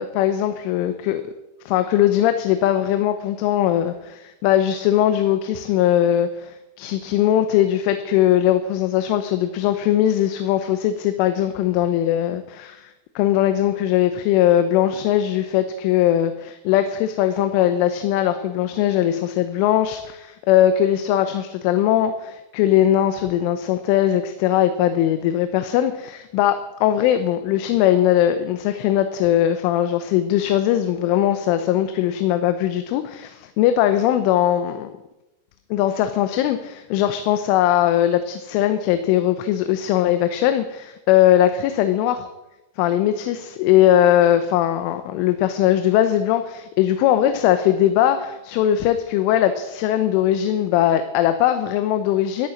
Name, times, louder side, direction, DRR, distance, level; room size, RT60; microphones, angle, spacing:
voice 1, 0.0-1.3 1.7-12.9 13.2-34.9 35.7-42.3 42.8-52.5, left 11 dB, 90° left, 9 dB, 3.3 m, -20 dB
13.5 x 8.8 x 9.7 m, 0.99 s
omnidirectional pair, 5.5 m